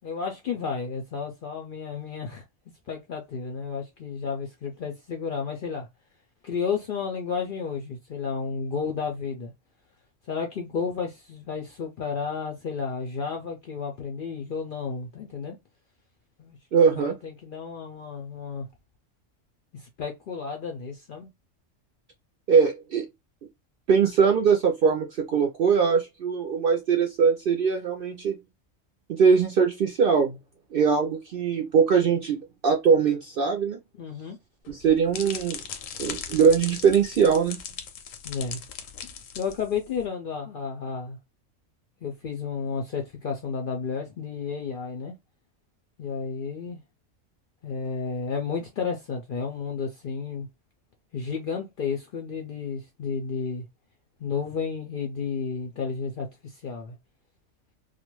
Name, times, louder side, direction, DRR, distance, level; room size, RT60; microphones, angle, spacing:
voice 1, 0.0-2.4 2.9-5.9 6.4-9.5 10.3-15.6 16.4-18.7 19.7-21.3 34.0-34.4 38.2-38.6 39.4-41.2 42.0-45.2 46.0-46.8 47.6-50.5 51.1-53.7 54.2-57.0, left 5 dB, 60° left, 0.5 m, -32 dB
voice 2, 16.7-17.1 22.5-23.1 23.9-28.4 29.1-30.4 30.7-33.8 34.7-35.6 36.0-37.6, right 6 dB, 65° right, 0.6 m, -21 dB
sound 1, 34.6-40.0, left 7 dB, 80° left, 1.0 m, -39 dB
2.4 x 2.2 x 2.9 m
omnidirectional pair, 1.4 m